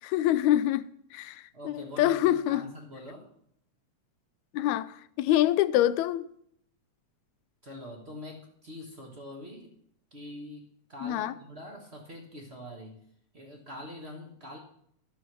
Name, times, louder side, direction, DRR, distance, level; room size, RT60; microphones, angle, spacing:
voice 1, 0.0-2.6 4.5-6.3 11.0-11.3, left 13 dB, 85° left, 1.9 m, -26 dB
voice 2, 1.5-3.3 7.6-9.7 10.1-13.0 13.3-14.6, left 1 dB, 40° right, 1.0 m, -44 dB
12.5 x 6.3 x 6.1 m
omnidirectional pair, 3.3 m